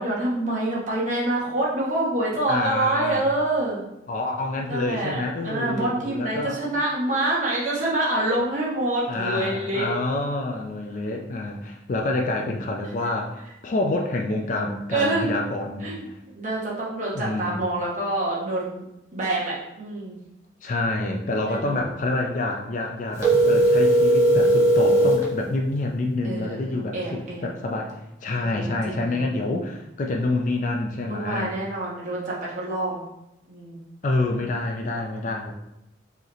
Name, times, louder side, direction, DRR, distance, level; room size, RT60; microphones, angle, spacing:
voice 1, 0.0-3.8 4.7-5.2 5.4-9.9 14.9-15.5 15.8-16.1 16.3-18.8 19.1-20.2 21.5-21.8 26.2-27.5 28.4-29.2 31.1-33.0 33.5-33.8, right 1 dB, 40° right, -6 dB, 1.0 m, -26 dB
voice 2, 2.5-3.2 4.1-6.6 9.1-16.1 17.1-17.6 20.6-27.9 28.2-31.6 34.0-35.5, left 2 dB, 40° left, 2 dB, 0.3 m, -27 dB
sound 1, 23.2-25.3, right 1 dB, 15° right, 1.0 m, -17 dB
4.7 x 3.1 x 3.0 m, 0.90 s
head